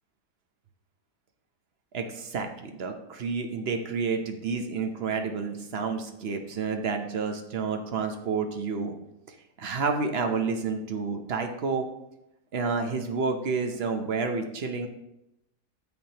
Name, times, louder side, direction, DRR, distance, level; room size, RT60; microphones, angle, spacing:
voice 1, 1.9-8.9 9.3-11.9 12.5-14.9, right 4 dB, 50° right, 5 dB, 0.8 m, -30 dB
9.3 x 7.2 x 2.9 m, 0.87 s
omnidirectional pair, 1.8 m